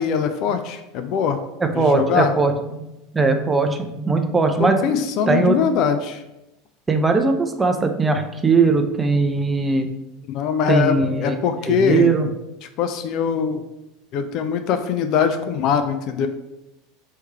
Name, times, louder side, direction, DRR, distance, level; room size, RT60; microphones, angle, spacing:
voice 1, 0.0-1.4 1.7-2.3 4.6-6.2 10.3-12.1 12.8-13.6 14.1-16.3, left 7 dB, 50° left, 8 dB, 0.3 m, -22 dB
voice 2, 1.6-2.8 3.1-4.8 5.3-5.6 6.9-9.9 10.7-11.4 11.7-12.3, right 3 dB, 15° right, 6 dB, 0.5 m, -19 dB
3.2 x 3.1 x 4.3 m, 0.93 s
figure-of-eight pair, 75°, 0 cm